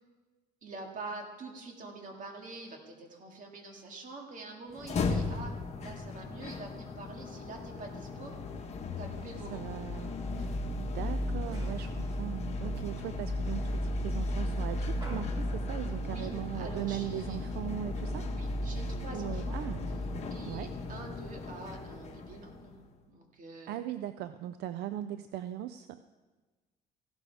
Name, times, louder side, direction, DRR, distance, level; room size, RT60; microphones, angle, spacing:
voice 1, 0.6-5.5 5.8-8.3 9.0-9.6 16.1-17.4 18.3-19.6 20.3-22.8 23.1-23.8, right 3 dB, 50° right, 2 dB, 2.3 m, -45 dB
sound 1, 4.7-22.9, left 2 dB, 40° left, 1.3 m, -35 dB
sound 2, 7.9-21.7, right 1 dB, 25° right, 4.3 m, -59 dB
voice 2, 9.5-18.3 19.1-19.8 20.5-20.7 23.7-26.0, right 12 dB, 75° right, 12 dB, 0.4 m, -39 dB
15.5 x 12.0 x 3.5 m, 1.3 s
cardioid pair, 110°, 17 cm